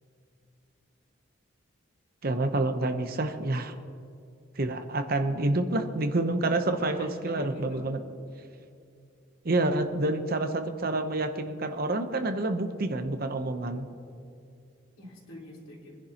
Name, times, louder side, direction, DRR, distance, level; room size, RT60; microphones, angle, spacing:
voice 1, 2.2-3.7 4.6-8.0 9.4-13.9, right 2 dB, 45° right, 8 dB, 0.8 m, -28 dB
voice 2, 6.4-8.0 15.0-16.0, left 1 dB, 90° left, -5 dB, 3.8 m, -44 dB
24.0 x 10.5 x 2.9 m, 2.4 s
head